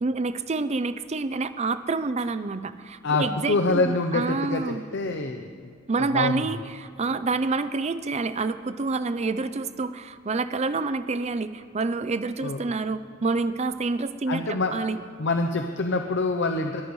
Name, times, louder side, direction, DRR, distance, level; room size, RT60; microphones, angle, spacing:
voice 1, 0.0-4.8 5.9-15.0, right 3 dB, 35° right, 13 dB, 0.5 m, -28 dB
voice 2, 3.0-5.5 6.1-6.5 12.4-12.6 14.3-14.9 15.2-16.8, left 3 dB, 65° left, 5 dB, 0.7 m, -26 dB
21.5 x 13.5 x 3.2 m, 2.2 s
head